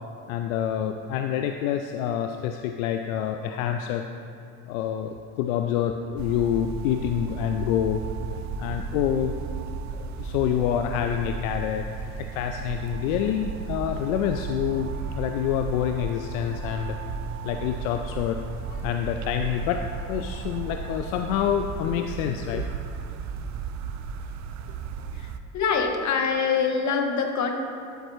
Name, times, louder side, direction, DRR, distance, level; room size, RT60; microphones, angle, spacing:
voice 1, 0.3-4.0 4.7-8.0 8.3-9.3 9.9-17.0 17.4-18.4 18.7-19.8 20.1-22.6, left 10 dB, 70° left, 5 dB, 0.5 m, -27 dB
sound 1, 6.2-25.4, right 5 dB, 40° right, 0.5 m, -34 dB
voice 2, 25.5-27.5, left 5 dB, 40° left, 3 dB, 1.2 m, -24 dB
11.5 x 5.2 x 3.1 m, 2.6 s
hypercardioid pair, 60°, 42 cm